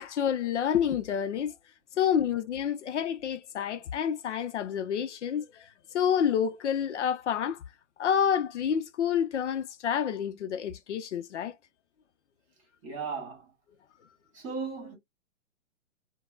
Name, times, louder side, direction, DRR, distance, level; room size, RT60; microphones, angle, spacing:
voice 1, 0.0-1.5 2.0-7.6 8.0-11.6, left 8 dB, 65° left, 0.5 m, -28 dB
voice 2, 12.8-13.5 14.3-14.9, right 5 dB, 25° right, 1.6 m, -36 dB
3.8 x 2.1 x 2.3 m
hypercardioid pair, 155°, 38 cm